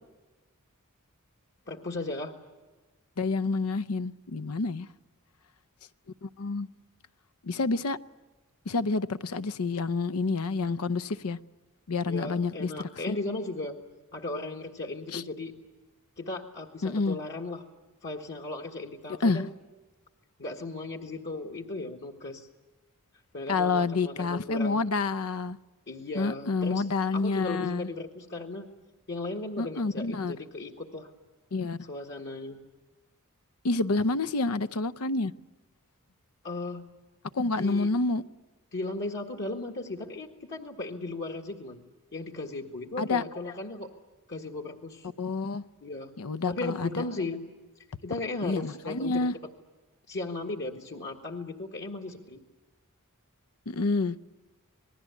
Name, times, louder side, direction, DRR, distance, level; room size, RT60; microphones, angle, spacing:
voice 1, 1.7-2.3 12.0-13.8 14.1-15.6 16.2-17.6 18.0-19.5 20.4-22.5 23.3-24.8 25.9-26.9 27.1-28.7 29.1-31.1 31.9-32.6 36.4-36.9 37.6-37.9 38.7-41.8 42.1-43.9 44.3-45.1 45.8-46.1 46.5-47.4 48.0-49.3 50.1-52.4, left 2 dB, 50° left, 1 dB, 1.8 m, -36 dB
voice 2, 3.2-4.9 6.2-6.7 7.4-8.0 8.7-11.4 11.9-13.2 15.1-15.2 16.8-17.2 19.2-19.5 23.5-25.6 26.1-27.9 29.6-30.3 31.5-31.8 33.6-35.3 37.3-38.2 43.0-43.2 45.2-45.6 46.2-47.0 48.4-49.3 53.7-54.2, left 3 dB, 75° left, 14 dB, 0.7 m, -28 dB
27.5 x 19.5 x 8.3 m, 1.2 s
head